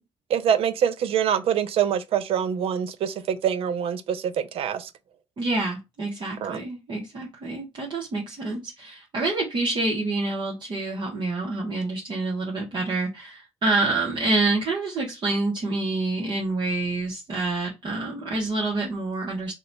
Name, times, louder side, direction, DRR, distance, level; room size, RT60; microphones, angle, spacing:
voice 1, 0.3-4.9 6.4-6.6, right 8 dB, 75° right, 0.4 m, -25 dB
voice 2, 5.4-19.5, right 2 dB, 55° right, 1.0 m, -27 dB
2.8 x 2.2 x 3.9 m
cardioid pair, 75°, 10 cm